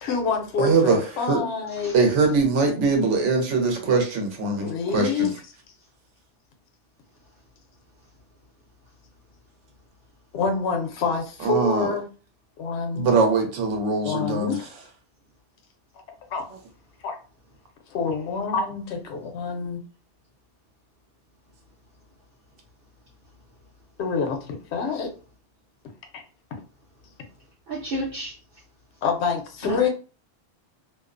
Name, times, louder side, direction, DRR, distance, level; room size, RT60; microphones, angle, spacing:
voice 1, 0.0-2.0 4.6-5.3 10.3-12.0 12.6-13.1 14.0-14.7 16.3-16.4 17.0-17.2 17.9-19.8 24.0-25.1 26.1-26.2 29.0-29.9, left 5 dB, 70° left, 4 dB, 0.9 m, -27 dB
voice 2, 0.6-1.4 1.9-5.3 11.4-11.9 12.9-14.6, right 4 dB, 85° right, 3 dB, 1.0 m, -22 dB
voice 3, 1.8-2.1 27.7-28.3 29.6-29.9, right 1 dB, 60° right, -4 dB, 0.8 m, -31 dB
2.5 x 2.0 x 2.4 m, 0.36 s
omnidirectional pair, 1.2 m